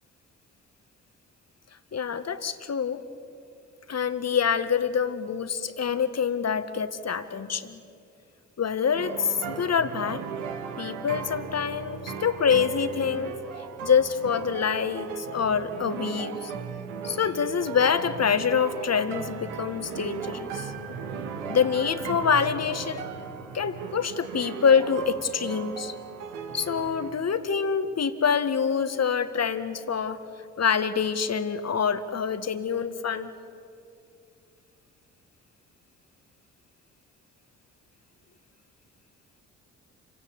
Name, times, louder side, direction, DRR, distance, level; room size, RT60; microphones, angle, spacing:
voice 1, 1.9-3.0 3.9-7.8 8.6-10.2 10.8-13.3 13.8-16.5 17.0-20.7 21.5-23.1 23.5-25.9 26.5-30.2 30.6-33.3, left 6 dB, 45° left, 11 dB, 1.8 m, -26 dB
sound 1, 8.9-27.1, right 6 dB, 85° right, 1.8 m, -37 dB
29.0 x 17.0 x 8.6 m, 2.5 s
hypercardioid pair, 40°, 37 cm